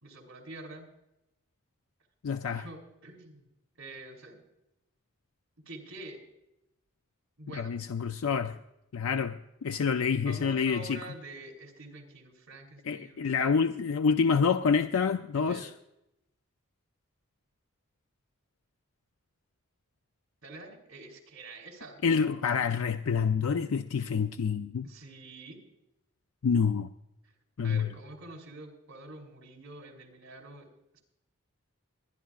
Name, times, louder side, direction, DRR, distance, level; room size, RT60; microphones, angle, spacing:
voice 1, 0.0-0.9 2.4-3.4 3.8-4.4 5.6-6.2 7.4-7.8 10.2-13.6 15.3-15.7 20.4-22.1 24.8-25.6 27.6-30.7 30.9-31.0, right 2 dB, 70° right, 3 dB, 3.1 m, -47 dB
voice 2, 2.2-2.6 7.5-8.6 8.9-11.0 12.9-15.7 22.0-24.9 26.4-26.9 27.6-27.9, left 6 dB, 85° left, 9 dB, 0.4 m, -27 dB
25.0 x 10.5 x 2.4 m, 0.86 s
head